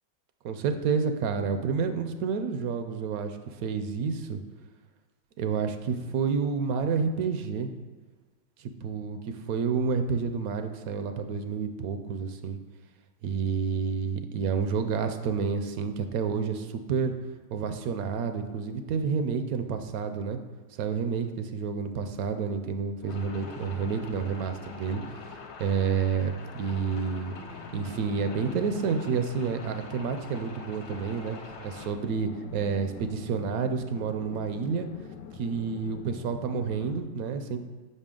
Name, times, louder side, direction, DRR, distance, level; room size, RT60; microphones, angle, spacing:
voice 1, 0.4-4.4 5.4-7.7 8.6-12.6 13.2-17.1 17.5-20.4 20.8-25.0 25.6-27.4 27.7-31.4 31.6-34.9 35.3-37.6, right 5 dB, 70° right, 8 dB, 0.9 m, -29 dB
sound 1, 23.0-37.0, left 7 dB, 85° left, 1.2 m, -46 dB
sound 2, 23.1-31.9, left 3 dB, 65° left, 1.3 m, -46 dB
6.6 x 5.5 x 3.7 m, 1.3 s
omnidirectional pair, 1.8 m